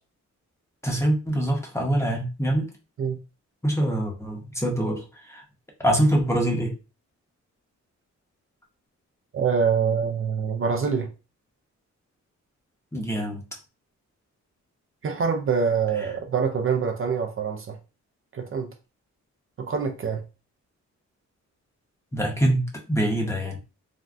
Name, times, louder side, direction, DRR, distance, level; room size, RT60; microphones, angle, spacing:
voice 1, 0.8-2.7 3.6-5.4 5.8-6.7 12.9-13.4 22.1-23.6, right 1 dB, 10° left, 0.7 m, -24 dB
voice 2, 9.3-11.1 15.0-17.8 18.3-18.7 19.6-20.2, right 6 dB, 45° right, 0.4 m, -25 dB
3.5 x 2.1 x 2.4 m
wide cardioid pair, 140°, 29 cm